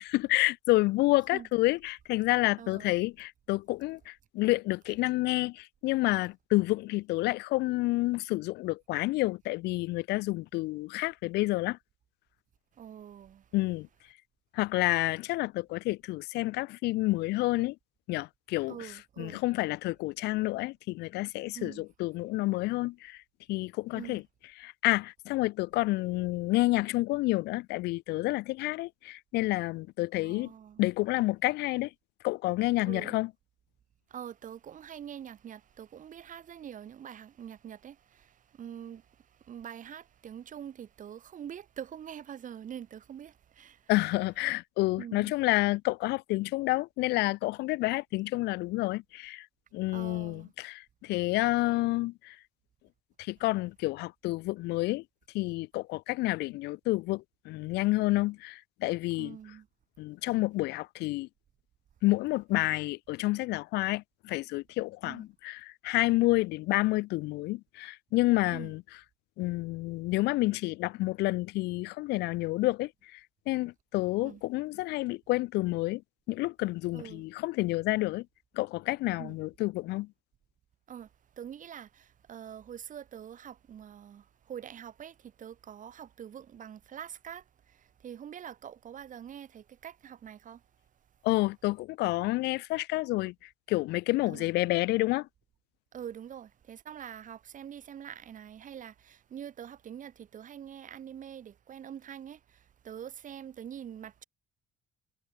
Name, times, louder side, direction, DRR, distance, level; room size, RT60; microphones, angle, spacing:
voice 1, 0.0-11.8 13.5-13.9 14.5-17.8 18.1-23.2 23.5-24.2 24.6-30.5 30.8-31.9 32.2-33.3 43.9-49.5 49.7-52.4 53.2-55.0 55.3-59.4 60.0-61.3 62.0-68.8 69.4-73.2 73.5-76.0 76.3-78.3 78.5-80.1 91.2-95.3, left 20 dB, 80° left, 0.6 m, -29 dB
voice 2, 2.6-2.9 12.7-13.5 18.7-19.4 21.5-21.8 24.0-24.2 30.2-30.8 32.8-33.2 34.1-43.9 45.0-45.3 49.9-50.5 59.2-59.7 65.0-65.3 68.5-68.7 74.2-74.4 76.9-77.2 79.2-79.4 80.9-81.1 81.4-90.6 94.3-94.5 95.9-104.2, right 9 dB, 50° right, 5.4 m, -45 dB
cardioid pair, 110°, 17 cm